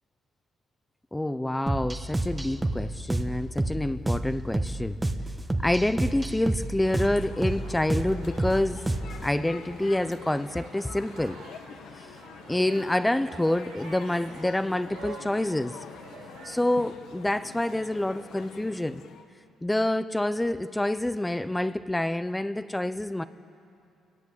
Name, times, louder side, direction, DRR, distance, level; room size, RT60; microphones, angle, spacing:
voice 1, 1.1-5.0 5.6-8.8 9.2-11.4 12.5-15.8 16.4-19.0 19.6-23.2, left 1 dB, 10° left, 13 dB, 0.7 m, -27 dB
sound 1, 1.7-9.3, right 2 dB, 10° right, 1.3 m, -30 dB
sound 2, 6.8-19.2, left 7 dB, 70° left, 1.7 m, -46 dB
sound 3, 7.5-16.8, right 5 dB, 85° right, 4.3 m, -48 dB
29.0 x 19.5 x 8.3 m, 2.7 s
cardioid pair, 115°, 0 cm